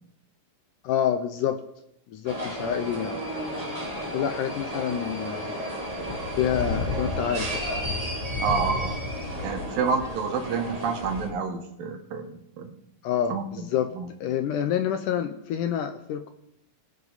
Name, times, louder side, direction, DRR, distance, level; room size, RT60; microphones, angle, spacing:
voice 1, 0.8-1.6 2.1-3.2 4.1-5.6 6.4-7.6 13.0-13.9 14.2-16.3, left 9 dB, 75° left, 7 dB, 2.0 m, -27 dB
sound 1, 2.2-11.3, left 1 dB, 10° right, 2.3 m, -32 dB
voice 2, 8.4-9.0 9.4-12.7 13.3-13.7 13.9-14.1, right 5 dB, 70° right, 5 dB, 2.9 m, -29 dB
22.0 x 8.0 x 4.0 m, 0.80 s
omnidirectional pair, 4.2 m